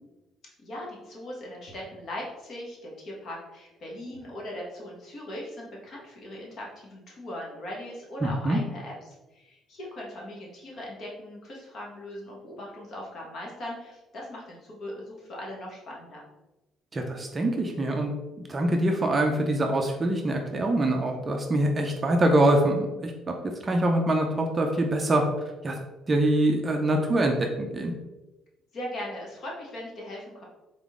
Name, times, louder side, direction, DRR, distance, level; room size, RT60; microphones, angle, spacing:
voice 1, 0.6-16.3 28.7-30.4, left 1 dB, 45° left, -2 dB, 1.2 m, -39 dB
voice 2, 8.2-8.6 16.9-18.1 18.5-25.8 26.1-27.9, right 1 dB, 20° right, 2 dB, 0.5 m, -24 dB
3.9 x 3.7 x 3.6 m, 1.1 s
cardioid pair, 165°, 0 cm